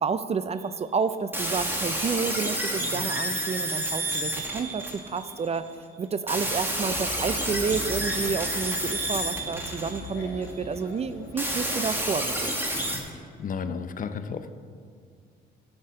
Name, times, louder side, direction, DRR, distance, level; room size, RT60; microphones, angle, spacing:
voice 1, 0.0-12.6, right 5 dB, 30° right, 12 dB, 0.4 m, -30 dB
sound 1, 1.3-5.6 6.3-10.5 11.4-13.0, right 1 dB, 10° right, 1.4 m, -30 dB
sound 2, 6.8-12.8, left 2 dB, 90° left, 1.4 m, -41 dB
voice 2, 13.1-14.5, left 6 dB, 45° left, 10 dB, 0.5 m, -33 dB
11.5 x 7.5 x 3.7 m, 2.1 s
cardioid pair, 90°, 20 cm